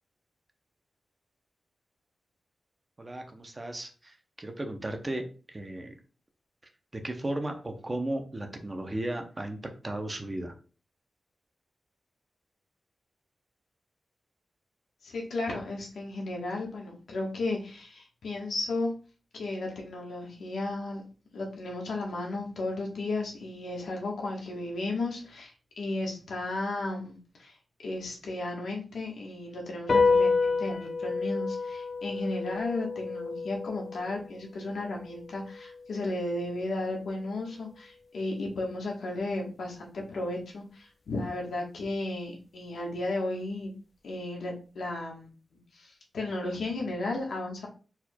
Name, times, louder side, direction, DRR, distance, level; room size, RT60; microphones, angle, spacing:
voice 1, 3.0-5.2 5.5-5.9 6.9-9.6 9.8-10.5, right 1 dB, 20° right, 5 dB, 0.7 m, -35 dB
voice 2, 15.0-18.9 19.3-21.0 21.3-27.6 27.8-43.7 44.0-47.7, left 2 dB, 90° left, -1 dB, 1.3 m, -34 dB
sound 1, 29.9-36.6, left 4 dB, 50° left, 0.5 m, -30 dB
4.6 x 4.2 x 2.3 m, 0.36 s
wide cardioid pair, 145°, 0 cm